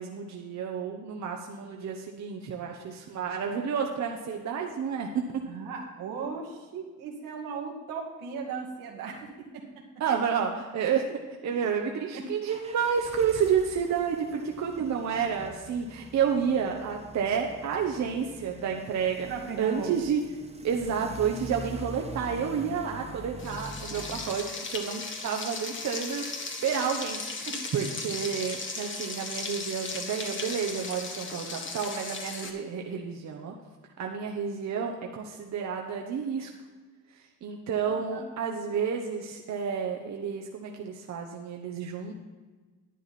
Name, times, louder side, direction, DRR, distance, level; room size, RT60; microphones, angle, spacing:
voice 1, 0.0-5.5 10.0-19.3 19.6-20.2 20.6-26.2 26.6-27.5 27.7-33.5 34.0-36.5 37.4-42.1, right 7 dB, 60° right, 2 dB, 1.1 m, -30 dB
voice 2, 5.5-9.6 11.5-11.7 12.1-12.3 14.8-14.9 19.3-20.0 27.5-27.8 37.8-38.2, right 5 dB, 85° right, 0 dB, 2.2 m, -37 dB
sound 1, 12.5-24.4, right 2 dB, 20° right, 1.1 m, -44 dB
Frying (food), 23.4-32.5, left 3 dB, 40° left, 1.5 m, -37 dB
11.0 x 9.0 x 4.2 m, 1.3 s
cardioid pair, 95°, 32 cm